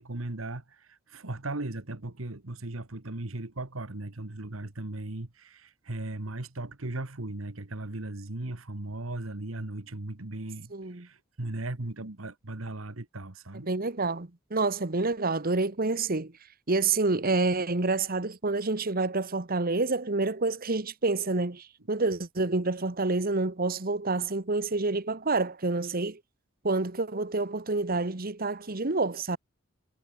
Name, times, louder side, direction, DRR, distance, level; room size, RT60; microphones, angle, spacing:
voice 1, 0.0-13.7, right 2 dB, 90° right, 1.7 m, -37 dB
voice 2, 10.7-11.1 13.5-16.3 16.7-26.2 26.6-29.4, right 3 dB, 45° right, 1.4 m, -28 dB
head